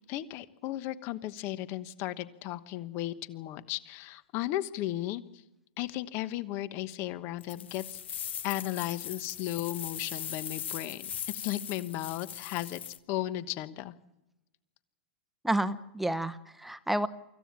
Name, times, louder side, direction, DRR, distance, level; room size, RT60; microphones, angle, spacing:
voice 1, 0.1-5.4 5.8-8.0 8.4-12.8 13.1-13.9, left 14 dB, 40° left, 14 dB, 1.1 m, -35 dB
sound 1, 7.4-13.0, left 9 dB, 80° left, 1.2 m, -39 dB
voice 2, 15.4-17.1, right 1 dB, 5° right, 13 dB, 0.9 m, -30 dB
25.0 x 15.0 x 7.4 m, 0.96 s
hypercardioid pair, 125°, 6 cm